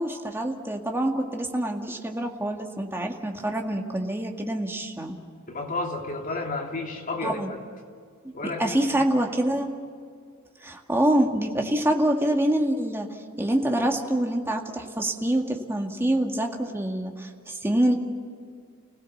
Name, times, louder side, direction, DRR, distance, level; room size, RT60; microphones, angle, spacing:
voice 1, 0.0-5.2 7.2-7.5 8.4-9.7 10.6-13.1 13.4-17.9, right 1 dB, 10° right, 2 dB, 2.0 m, -26 dB
voice 2, 5.5-7.6 8.3-9.0, left 2 dB, 40° left, 1 dB, 3.2 m, -32 dB
29.5 x 17.0 x 7.2 m, 2.2 s
head